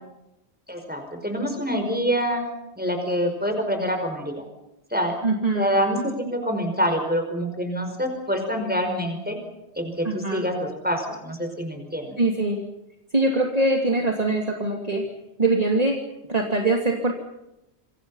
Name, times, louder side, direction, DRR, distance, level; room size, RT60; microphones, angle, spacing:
voice 1, 0.7-2.4 2.8-4.3 4.9-5.2 5.5-9.4 9.8-12.2, equal, 10° right, 4 dB, 5.3 m, -26 dB
voice 2, 5.2-5.7 10.0-10.4 12.2-12.6 13.1-15.0 15.4-16.0 16.3-17.1, right 2 dB, 35° right, 1 dB, 3.0 m, -22 dB
28.0 x 25.5 x 5.7 m, 0.90 s
omnidirectional pair, 1.1 m